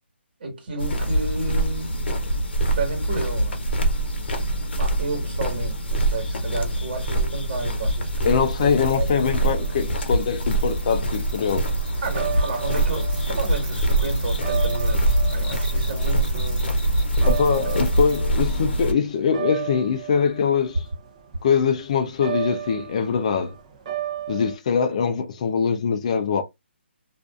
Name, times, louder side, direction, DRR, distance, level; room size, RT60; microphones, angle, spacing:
voice 1, 0.4-1.9 2.8-3.6 4.8-9.1 12.0-16.7 17.6-17.7, right 3 dB, 55° right, 1.5 m, -31 dB
sound 1, 0.8-18.9, right 1 dB, 65° left, 0.8 m, -24 dB
sound 2, 8.0-18.2, equal, 10° right, 1.2 m, -43 dB
voice 2, 8.2-11.7 17.3-20.9 21.4-23.5 24.3-26.4, left 6 dB, 35° left, 0.4 m, -23 dB
sound 3, 9.2-18.9 19.2-24.6, right 11 dB, 35° right, 0.6 m, -34 dB
2.5 x 2.3 x 2.3 m
hypercardioid pair, 165°, 6 cm